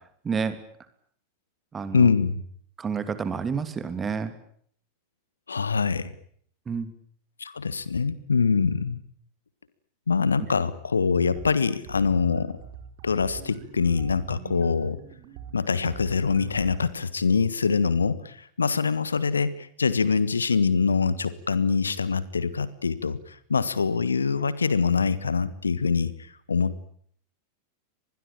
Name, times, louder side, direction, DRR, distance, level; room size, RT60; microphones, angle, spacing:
voice 1, 0.2-0.6 1.7-2.1 2.8-4.3 6.7-6.9, right 6 dB, 20° right, 11 dB, 2.8 m, -29 dB
voice 2, 1.9-2.4 5.5-6.1 7.4-9.0 10.1-12.6 13.0-15.0 15.5-26.1 26.5-26.8, left 5 dB, 75° left, 17 dB, 1.4 m, -24 dB
sound 1, 11.2-16.9, right 9 dB, 45° right, 4.4 m, -43 dB
25.0 x 20.5 x 8.9 m, 0.62 s
figure-of-eight pair, 90°, 0 cm